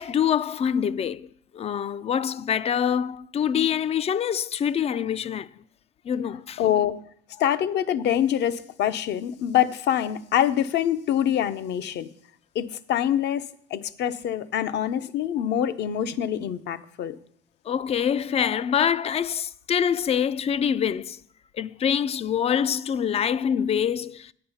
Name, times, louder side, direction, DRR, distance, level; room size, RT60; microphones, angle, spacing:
voice 1, 0.0-5.5 6.1-6.6 17.7-21.2 21.5-24.3, left 8 dB, 30° left, 0.3 m, -25 dB
voice 2, 6.6-7.0 7.4-12.1 12.5-17.2, left 10 dB, 55° left, 0.7 m, -25 dB
8.8 x 8.7 x 5.6 m
cardioid pair, 115°, 21 cm